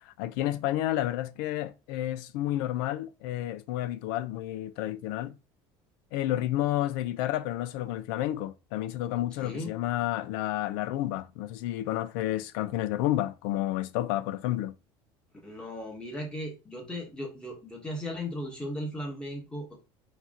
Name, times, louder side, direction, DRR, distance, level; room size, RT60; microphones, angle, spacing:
voice 1, 0.1-5.4 6.1-14.7, left 14 dB, 90° left, 0.5 m, -30 dB
voice 2, 9.4-9.7 15.4-19.8, left 1 dB, 10° left, 1.4 m, -37 dB
4.6 x 2.7 x 3.7 m
cardioid pair, 170°, 11 cm